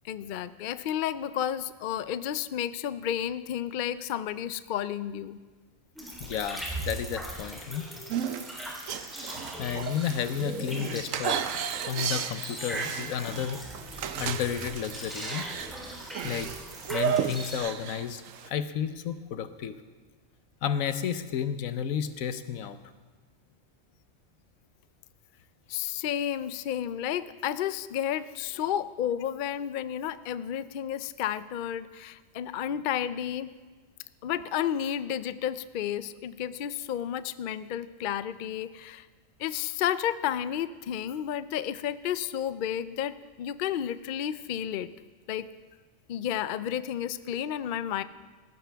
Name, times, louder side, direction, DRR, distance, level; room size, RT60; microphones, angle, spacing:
voice 1, 0.0-5.4 25.7-33.5 34.2-39.1 39.4-44.9 45.3-45.5 46.1-48.0, left 10 dB, 65° left, 14 dB, 0.5 m, -32 dB
sound 1, 6.0-17.6, right 1 dB, ahead, 3.4 m, -40 dB
voice 2, 6.2-7.9 9.6-11.4 11.9-13.6 14.2-15.5 15.9-16.0 16.2-16.5 16.9-19.8 20.6-22.8, left 8 dB, 90° left, 11 dB, 1.2 m, -32 dB
sound 2, 8.1-18.5, right 8 dB, 75° right, 1.1 m, -34 dB
18.5 x 15.5 x 3.4 m, 1.4 s
omnidirectional pair, 1.4 m